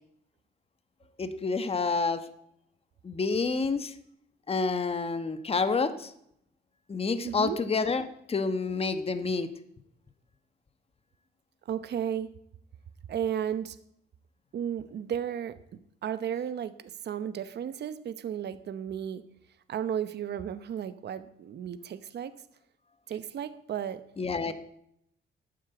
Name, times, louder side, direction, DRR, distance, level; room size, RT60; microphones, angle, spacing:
voice 1, 1.2-2.2 3.0-3.9 4.5-6.1 6.9-9.5 24.2-24.5, left 4 dB, 30° left, 10 dB, 1.2 m, -28 dB
voice 2, 7.2-7.6 11.6-12.3 13.1-13.8 14.5-19.2 19.7-22.4 23.1-24.0 24.4-24.5, right 9 dB, 60° right, 12 dB, 0.9 m, -34 dB
12.0 x 9.4 x 8.0 m, 0.73 s
cardioid pair, 90°, 20 cm